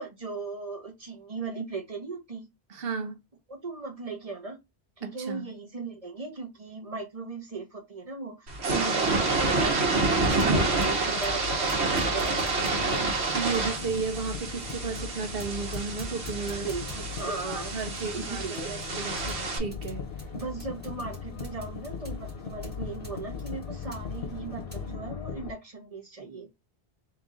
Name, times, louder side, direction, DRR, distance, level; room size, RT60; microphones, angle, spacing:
voice 1, 0.0-2.5 3.5-4.6 5.0-13.0 16.5-17.7 18.1-18.7 20.3-26.5, right 4 dB, 35° right, 1.1 m, -38 dB
voice 2, 2.7-3.2 5.0-5.5 13.3-16.7 17.3-20.1, right 5 dB, 65° right, 1.0 m, -34 dB
sound 1, 8.5-19.6, right 3 dB, 85° right, 1.3 m, -28 dB
sound 2, 10.2-24.9, left 1 dB, 10° right, 1.4 m, -48 dB
sound 3, 10.5-25.5, left 6 dB, 70° left, 0.9 m, -39 dB
3.5 x 2.9 x 3.8 m
omnidirectional pair, 1.1 m